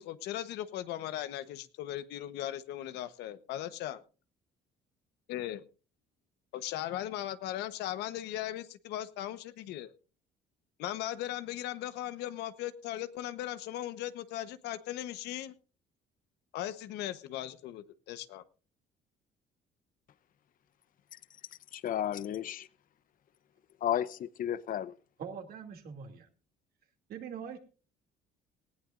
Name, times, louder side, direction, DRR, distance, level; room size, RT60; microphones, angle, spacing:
voice 1, 0.0-4.0 5.3-5.6 6.5-9.9 10.8-15.5 16.5-18.4, left 13 dB, 85° left, 1.1 m, -38 dB
voice 2, 21.7-22.7 23.8-24.9, left 10 dB, 55° left, 0.8 m, -33 dB
voice 3, 25.2-26.3 27.1-27.6, right 7 dB, 65° right, 2.6 m, -42 dB
19.0 x 16.0 x 2.6 m
cardioid pair, 110°, 17 cm